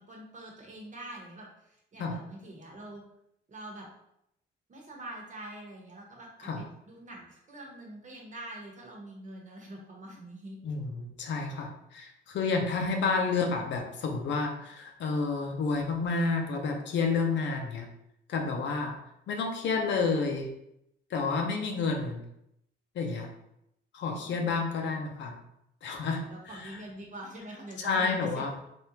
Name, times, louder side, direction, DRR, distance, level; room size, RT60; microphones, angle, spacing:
voice 1, 0.1-3.0 3.5-3.9 4.7-10.6 24.2-24.6 26.2-28.5, right 1 dB, 40° right, -1 dB, 1.1 m, -45 dB
voice 2, 10.6-17.9 18.3-19.0 19.3-20.5 21.1-22.2 22.9-23.3 23.9-25.4 25.8-26.8 27.8-28.5, left 4 dB, 65° left, 3 dB, 0.6 m, -30 dB
3.3 x 2.6 x 2.9 m, 0.79 s
cardioid pair, 90°, 20 cm